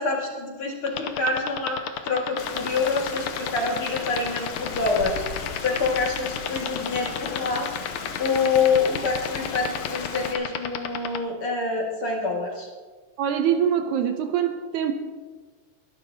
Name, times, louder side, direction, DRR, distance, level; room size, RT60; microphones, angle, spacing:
voice 1, 0.0-1.8 2.0-7.7 8.2-12.7, left 4 dB, 45° left, -2 dB, 2.7 m, -26 dB
sound 1, 0.9-11.2, left 12 dB, 80° left, 2.3 m, -29 dB
Stream, 2.4-10.4, left 5 dB, 65° left, 2.1 m, -36 dB
voice 2, 13.2-14.9, right 9 dB, 75° right, 7 dB, 2.1 m, -24 dB
23.0 x 12.0 x 2.9 m, 1.4 s
omnidirectional pair, 3.7 m